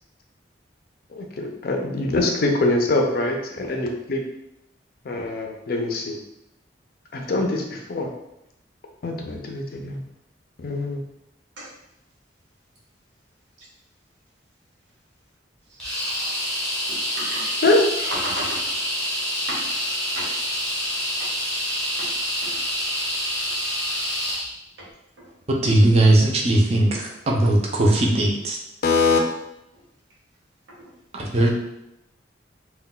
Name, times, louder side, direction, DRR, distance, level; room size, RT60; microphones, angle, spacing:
voice 1, 1.1-4.2 5.0-6.2 7.1-8.1 9.0-10.0 10.6-11.0 17.6-17.9 28.8-29.2, left 2 dB, 50° left, 2 dB, 0.4 m, -23 dB
sound 1, 15.8-24.5, equal, 5° left, 0.7 m, -27 dB
voice 2, 16.9-17.6 18.0-18.8 19.5-19.8 20.1-20.4 21.2-21.3 22.0-22.2 22.4-22.6 22.9-23.0 24.8-25.3 29.7-29.8 30.7-30.9, equal, 90° right, -5 dB, 1.0 m, -35 dB
voice 3, 25.6-28.6 31.1-31.5, right 1 dB, 35° right, 0 dB, 0.4 m, -18 dB
2.2 x 2.2 x 3.7 m, 0.85 s
head